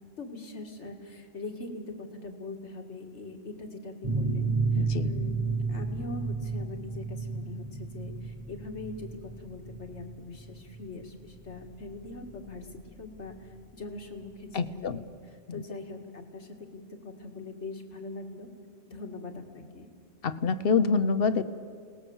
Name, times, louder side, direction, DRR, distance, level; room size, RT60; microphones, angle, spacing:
voice 1, 0.2-15.0 15.5-18.5 18.9-19.9, left 3 dB, 80° left, 3 dB, 2.3 m, -42 dB
sound 1, 4.0-13.4, right 4 dB, 30° right, 2.5 m, -32 dB
voice 2, 4.8-5.1 14.5-15.0 15.5-15.6 20.2-21.4, left 5 dB, 60° left, 13 dB, 1.0 m, -26 dB
29.0 x 19.0 x 7.2 m, 2.2 s
omnidirectional pair, 1.1 m